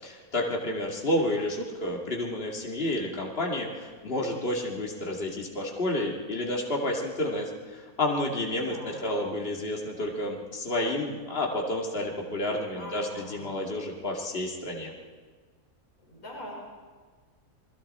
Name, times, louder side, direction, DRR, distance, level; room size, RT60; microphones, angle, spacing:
voice 1, 0.0-14.9, left 1 dB, 40° left, -1 dB, 2.6 m, -30 dB
voice 2, 8.5-9.1 12.8-13.7 16.0-16.5, left 1 dB, 70° left, -3 dB, 5.7 m, -43 dB
29.0 x 21.0 x 4.3 m, 1.5 s
omnidirectional pair, 1.5 m